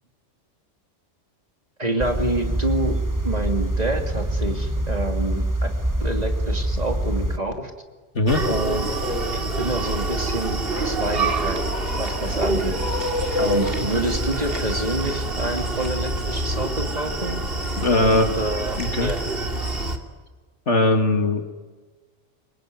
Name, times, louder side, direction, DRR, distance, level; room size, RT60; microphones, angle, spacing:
voice 1, 1.8-3.0 3.2-5.4 6.0-7.7 8.5-8.9 9.3-10.6 10.8-11.6 12.0-12.7 13.4-17.4 17.9-19.3, right 1 dB, 35° right, 4 dB, 2.9 m, -27 dB
sound 1, 2.0-7.4, right 1 dB, 15° right, 1.3 m, -25 dB
Screaming, 8.3-20.0, right 2 dB, 50° right, 2.8 m, -26 dB
voice 2, 17.8-18.3 18.8-19.1 20.7-21.5, left 2 dB, 70° left, 5 dB, 2.7 m, -20 dB
27.0 x 23.5 x 9.5 m, 1.3 s
omnidirectional pair, 1.2 m